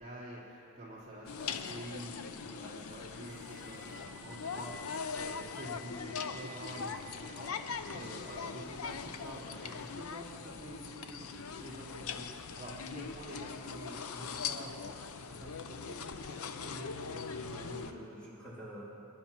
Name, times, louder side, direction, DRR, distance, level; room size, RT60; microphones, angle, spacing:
voice 1, 0.0-18.1, right 1 dB, 30° right, -9 dB, 3.7 m, -48 dB
sound 1, 1.3-17.9, left 6 dB, 80° left, 0.6 m, -41 dB
sound 2, 3.1-17.7, equal, 70° right, 1.4 m, -58 dB
voice 2, 17.2-18.8, right 1 dB, 5° left, -10 dB, 3.2 m, -48 dB
26.5 x 11.0 x 3.0 m, 2.6 s
head